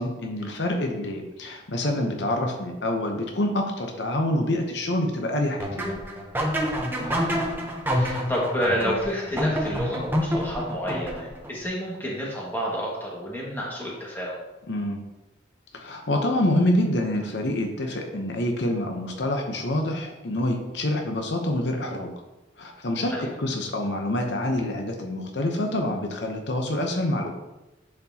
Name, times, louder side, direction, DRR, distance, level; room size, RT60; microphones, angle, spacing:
voice 1, 0.0-5.9 14.7-15.0 15.7-22.1 22.6-27.3, left 1 dB, 70° left, 2 dB, 0.8 m, -26 dB
sound 1, 5.6-11.5, equal, 10° right, 0.8 m, -27 dB
voice 2, 6.9-14.4 23.1-23.3, equal, 10° left, -5 dB, 1.7 m, -30 dB
10.5 x 4.4 x 2.8 m, 1.0 s
head